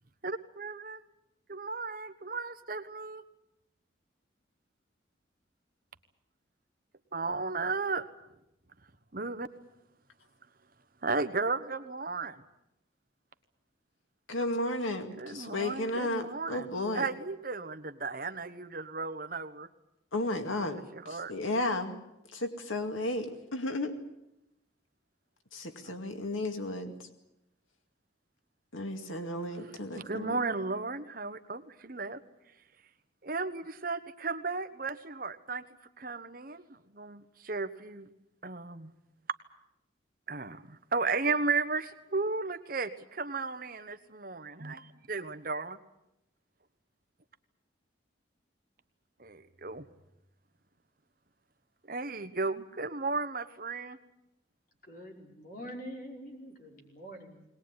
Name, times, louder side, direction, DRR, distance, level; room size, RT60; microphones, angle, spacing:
voice 1, 0.2-1.0 1.5-3.2 7.1-8.1 9.1-9.5 11.0-12.4 15.2-16.7 16.9-19.7 20.7-21.3 25.8-26.0 29.9-32.2 33.2-35.6 36.0-38.1 38.4-38.9 40.3-45.8 49.2-49.8 51.9-54.0, right 4 dB, 45° right, 10 dB, 1.2 m, -34 dB
voice 2, 14.3-17.1 20.1-20.8 21.1-22.0 22.3-23.3 23.5-23.9 25.5-26.9 28.7-30.5, left 1 dB, 90° left, 6 dB, 2.2 m, -33 dB
voice 3, 54.8-57.5, equal, 45° left, 1 dB, 5.4 m, -45 dB
21.0 x 20.0 x 9.6 m, 0.86 s
head